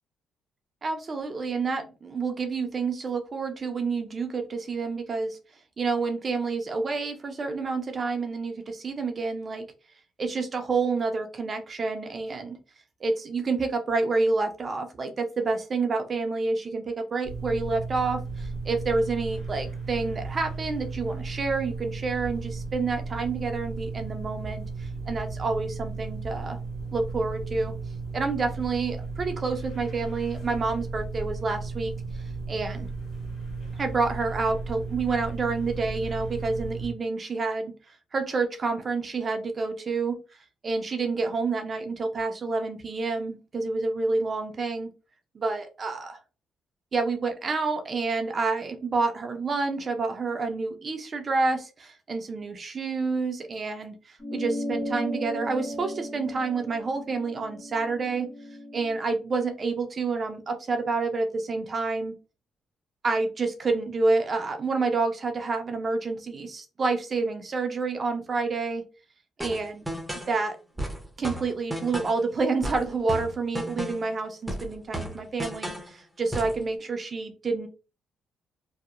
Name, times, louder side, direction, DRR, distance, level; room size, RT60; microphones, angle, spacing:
voice 1, 0.8-5.4 5.8-9.7 10.2-12.6 13.0-26.6 26.9-27.7 28.1-31.9 32.5-32.9 33.7-37.7 38.1-40.2 40.6-44.9 45.3-46.2 46.9-58.3 58.7-62.1 63.0-68.8 69.4-69.8 70.3-70.6 71.2-77.7, right 4 dB, 40° right, 6 dB, 0.4 m, -28 dB
sound 1, 17.2-36.9, right 4 dB, 80° left, 1.1 m, -35 dB
sound 2, 54.2-59.0, equal, 20° left, 1.2 m, -35 dB
sound 3, 69.4-70.3 70.8-72.2 72.6-74.1 74.5-75.9 76.3-76.6, right 1 dB, 5° right, 0.6 m, -34 dB
2.8 x 2.0 x 2.4 m, 0.33 s
cardioid pair, 90°, 0 cm